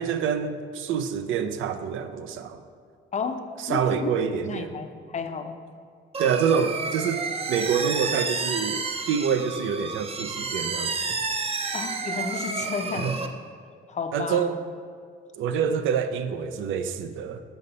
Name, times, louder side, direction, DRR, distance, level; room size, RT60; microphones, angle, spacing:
voice 1, 0.0-2.6 3.6-4.7 6.2-11.2 12.9-13.2 14.1-14.6 15.4-17.4, right 7 dB, 80° right, 10 dB, 0.5 m, -27 dB
voice 2, 3.7-4.1 4.5-5.5 11.7-13.1 13.9-14.5, left 5 dB, 35° left, 7 dB, 0.5 m, -32 dB
sound 1, 6.1-13.3, right 4 dB, 30° right, 0.5 m, -30 dB
7.1 x 5.2 x 3.9 m, 2.1 s
cardioid pair, 90°, 20 cm